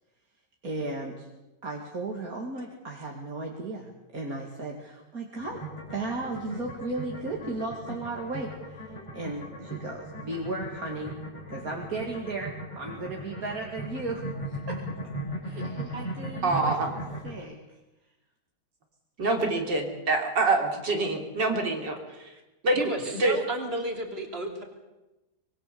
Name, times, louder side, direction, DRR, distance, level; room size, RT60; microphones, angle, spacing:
voice 1, 0.6-1.3 1.6-5.6 5.9-8.5 9.1-11.1 11.5-14.8 15.4-17.8, right 2 dB, 55° right, 0 dB, 2.9 m, -35 dB
sound 1, 5.4-17.4, right 1 dB, 15° left, 6.4 m, -38 dB
voice 2, 16.4-16.9 19.2-22.3 22.6-22.8 23.2-23.4, right 2 dB, 80° right, 2 dB, 3.9 m, -26 dB
voice 3, 22.8-24.6, right 2 dB, 35° right, 2 dB, 3.7 m, -32 dB
25.0 x 23.0 x 6.9 m, 1.0 s
omnidirectional pair, 1.9 m